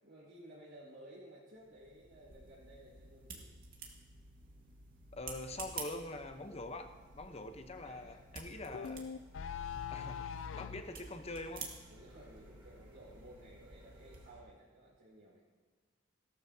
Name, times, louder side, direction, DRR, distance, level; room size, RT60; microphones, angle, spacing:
voice 1, 0.0-3.5 7.8-8.2 8.5-9.1 11.9-15.4, right 1 dB, 70° right, -8 dB, 4.6 m, -56 dB
sound 1, 1.6-14.3, right 4 dB, 50° right, 2.0 m, -51 dB
voice 2, 5.1-9.0 9.9-11.7, left 2 dB, 35° left, 7 dB, 0.9 m, -44 dB
sound 2, 5.5-14.4, equal, 25° right, 3.2 m, -65 dB
sound 3, 8.7-10.9, left 7 dB, 75° left, 0.4 m, -41 dB
17.0 x 13.0 x 2.8 m, 1.4 s
head